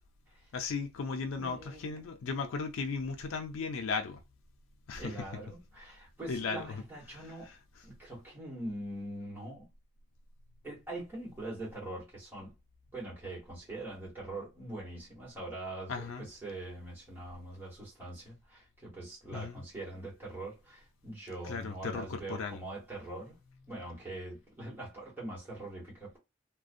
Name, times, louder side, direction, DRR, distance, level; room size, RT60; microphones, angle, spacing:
voice 1, 0.5-4.2 4.9-5.1 6.3-6.8 15.9-16.3 19.3-19.6 21.4-22.6, left 4 dB, 85° left, 0.4 m, -36 dB
voice 2, 1.4-2.0 5.0-7.5 7.8-9.7 10.6-12.5 12.9-23.4 23.7-26.2, right 2 dB, 10° right, 1.2 m, -43 dB
2.4 x 2.1 x 2.5 m
head